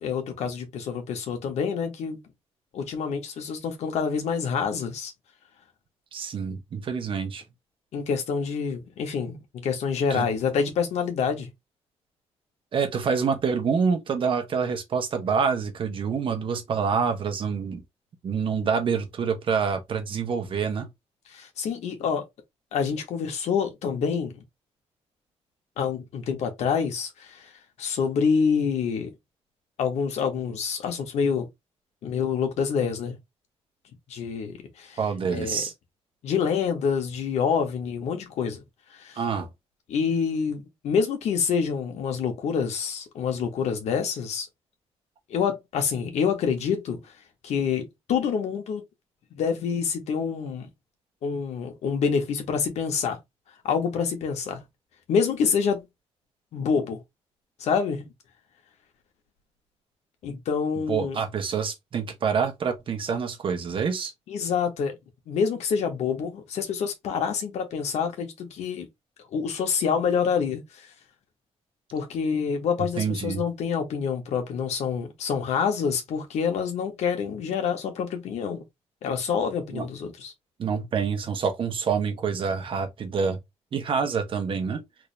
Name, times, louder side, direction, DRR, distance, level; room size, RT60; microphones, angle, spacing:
voice 1, 0.0-2.2 2.7-5.1 7.9-11.5 21.3-22.2 22.7-24.4 25.8-27.5 27.8-29.1 29.8-31.5 32.0-33.2 34.1-35.0 35.3-35.6 36.2-38.6 38.9-39.2 39.9-44.5 45.3-47.1 47.4-48.8 49.3-50.7 51.2-53.2 53.6-54.6 55.1-55.9 56.5-57.0 57.6-58.1 60.2-61.2 64.3-64.9 65.3-68.9 69.3-70.9 71.9-78.6 79.0-80.3, left 6 dB, 85° left, 1.3 m, -27 dB
voice 2, 6.1-7.4 10.1-10.3 12.7-17.8 18.2-20.9 35.0-35.7 39.2-39.5 60.9-64.1 73.0-73.4 79.7-79.8 80.6-83.4 83.7-84.8, right 6 dB, 50° right, 1.0 m, -27 dB
3.6 x 2.7 x 3.2 m
cardioid pair, 130°, 11 cm